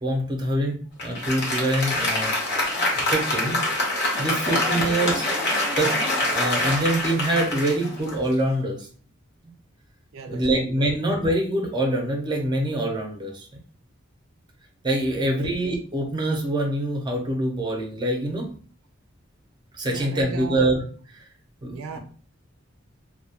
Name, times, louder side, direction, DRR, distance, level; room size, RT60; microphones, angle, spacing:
voice 1, 0.0-2.3 2.7-3.6 4.2-5.3 5.8-5.9 6.3-8.9 10.3-13.5 14.8-18.5 19.8-20.8 21.1-21.2 21.6-22.0, right 1 dB, 20° right, 1 dB, 0.5 m, -25 dB
Applause, 1.0-8.6, left 2 dB, 60° left, 0.8 m, -25 dB
voice 2, 4.5-4.9 10.1-10.9 15.1-15.8 19.9-20.7 21.7-22.0, right 5 dB, 85° right, 5 dB, 0.4 m, -38 dB
2.2 x 2.1 x 2.8 m, 0.43 s
head